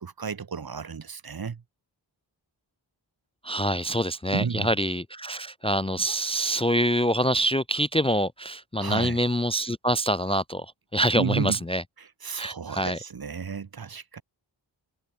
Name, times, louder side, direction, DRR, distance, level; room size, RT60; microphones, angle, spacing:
voice 1, 0.0-1.6 4.3-4.7 8.8-9.2 11.1-11.6 12.0-14.2, right 6 dB, 50° right, 1.0 m, -32 dB
voice 2, 3.4-11.8 12.4-13.0, equal, 15° left, 0.5 m, -25 dB
wide cardioid pair, 60°, 46 cm